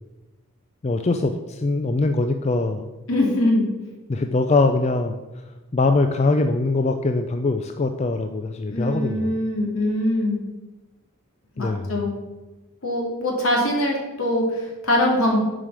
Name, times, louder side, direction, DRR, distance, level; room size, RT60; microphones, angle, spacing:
voice 1, 0.8-2.9 4.1-5.4 5.7-9.3 11.6-11.9, left 3 dB, 30° left, 6 dB, 0.3 m, -22 dB
voice 2, 3.1-3.6 8.7-10.4 11.6-12.1 12.8-15.4, left 1 dB, 75° left, -1 dB, 2.3 m, -22 dB
7.3 x 5.1 x 6.1 m, 1.1 s
head